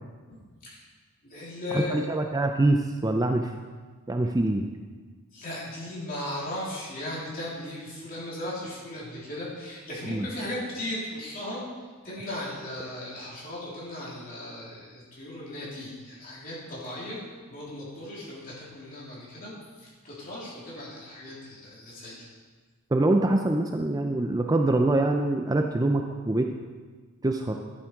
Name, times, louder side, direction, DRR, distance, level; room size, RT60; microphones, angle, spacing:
voice 1, 1.2-2.1 5.3-11.6 12.0-17.2 17.5-19.5 20.0-22.3, left 1 dB, 40° left, -6 dB, 3.2 m, -37 dB
voice 2, 1.7-3.5 4.1-4.7 10.1-10.3 22.9-26.5 27.2-27.6, right 2 dB, 15° right, 4 dB, 0.4 m, -24 dB
11.5 x 7.4 x 4.6 m, 1.4 s
head